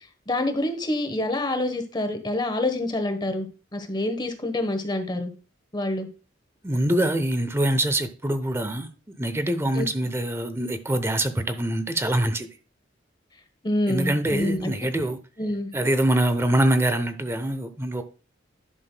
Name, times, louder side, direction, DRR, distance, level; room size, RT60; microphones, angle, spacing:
voice 1, 0.3-3.5 3.7-5.3 5.7-6.1 9.7-9.9 13.6-14.9 15.4-15.7, left 1 dB, 25° left, 1.1 m, -27 dB
voice 2, 6.6-8.9 9.2-12.5 13.9-15.2 15.7-18.0, right 1 dB, 15° right, 0.7 m, -24 dB
11.0 x 6.2 x 2.2 m
head